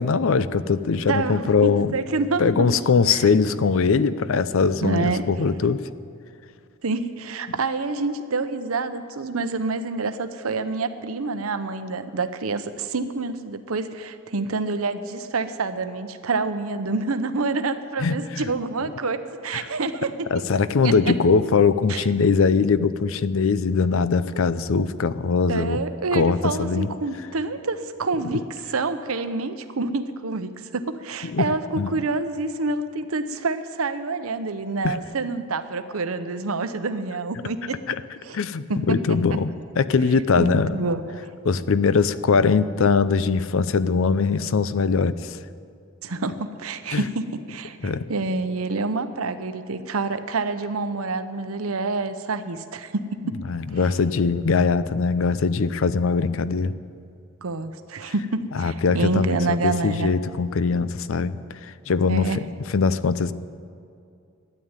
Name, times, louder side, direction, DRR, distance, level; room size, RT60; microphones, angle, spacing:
voice 1, 0.0-2.0 2.4-5.9 18.0-18.5 18.8-18.9 20.3-25.8 26.1-26.9 31.2-31.5 31.7-32.0 34.8-35.0 37.9-38.0 38.3-40.8 41.4-45.4 46.9-47.0 47.8-48.1 53.4-56.7 58.1-58.2 58.5-63.3, left 5 dB, 65° left, 15 dB, 0.5 m, -21 dB
voice 2, 1.1-2.8 3.1-3.2 4.8-5.3 6.8-20.1 20.8-21.2 21.9-22.0 25.5-31.6 31.9-37.8 38.2-38.4 38.7-39.2 40.4-41.3 46.0-53.4 57.4-60.1 62.1-62.4, right 3 dB, 80° right, 10 dB, 0.8 m, -27 dB
13.0 x 9.3 x 8.9 m, 2.4 s
head